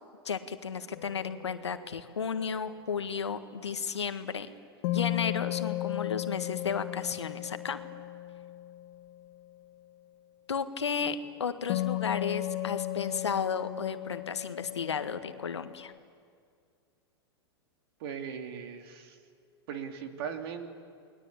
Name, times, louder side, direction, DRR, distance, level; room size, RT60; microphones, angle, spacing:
voice 1, 0.2-4.5 4.9-7.8 10.5-15.9, left 6 dB, 90° left, 9 dB, 1.6 m, -33 dB
sound 1, 0.9-2.4 4.8-9.3 11.7-15.9, left 17 dB, 55° left, 2.5 m, -36 dB
voice 2, 18.0-19.2 19.7-20.7, right 7 dB, 60° right, 5 dB, 3.0 m, -39 dB
29.5 x 21.0 x 8.7 m, 2.2 s
hypercardioid pair, 105°, 14 cm